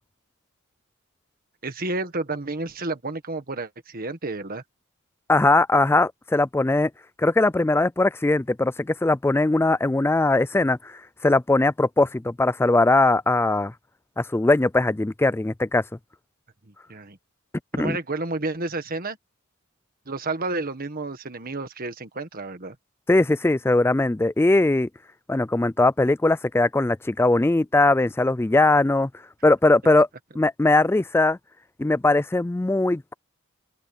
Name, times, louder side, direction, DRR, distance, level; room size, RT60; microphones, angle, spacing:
voice 1, 1.6-4.6 16.9-17.2 17.7-19.2 20.1-22.7, right 2 dB, 40° right, 1.6 m, -30 dB
voice 2, 5.3-6.9 7.2-13.7 14.2-15.8 17.7-18.0 23.1-24.9 25.3-29.1 29.4-30.1 30.3-31.4 31.8-33.1, left 2 dB, 10° left, 0.3 m, -20 dB
open air
head